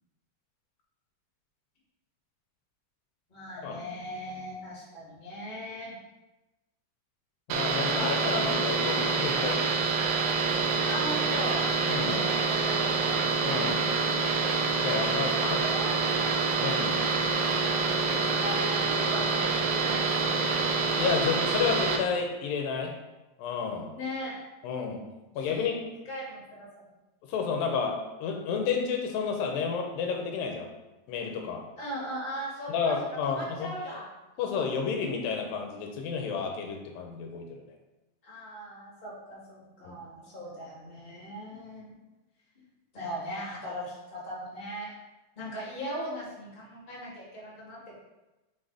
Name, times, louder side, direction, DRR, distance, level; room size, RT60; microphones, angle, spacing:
voice 1, 3.3-6.0 10.9-11.6 12.2-13.0 15.3-16.5 17.7-20.4 23.9-24.4 25.4-25.7 26.0-26.8 31.8-32.9 33.2-34.1 38.2-41.9 42.9-44.9 45.3-48.0, equal, 15° left, -7 dB, 1.8 m, -39 dB
voice 2, 7.5-9.6 11.9-12.3 13.4-13.9 14.8-15.6 16.6-17.1 21.0-23.0 23.4-23.9 24.6-25.0 25.4-25.9 27.3-30.7 31.1-31.7 32.7-33.8 34.4-37.6 39.8-40.0, left 5 dB, 85° left, 2 dB, 2.5 m, -31 dB
sound 1, 7.5-22.0, right 4 dB, 90° right, 2.4 m, -27 dB
5.9 x 4.0 x 4.8 m, 1.0 s
omnidirectional pair, 4.1 m